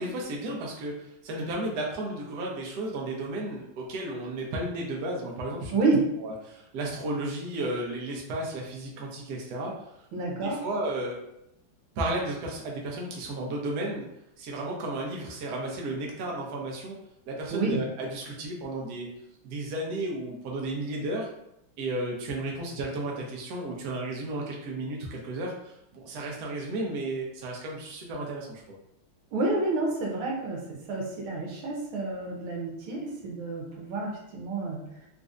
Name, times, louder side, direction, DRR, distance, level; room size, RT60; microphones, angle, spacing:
voice 1, 0.0-5.9 6.2-9.7 10.3-11.2 12.0-14.1 14.4-17.0 17.3-19.1 19.4-21.3 21.8-28.8, right 1 dB, 65° right, -2 dB, 1.0 m, -33 dB
voice 2, 5.7-6.0 10.1-10.6 17.5-17.8 29.3-34.8, right 3 dB, 85° right, -2 dB, 1.6 m, -29 dB
4.1 x 2.6 x 2.4 m, 0.80 s
omnidirectional pair, 2.4 m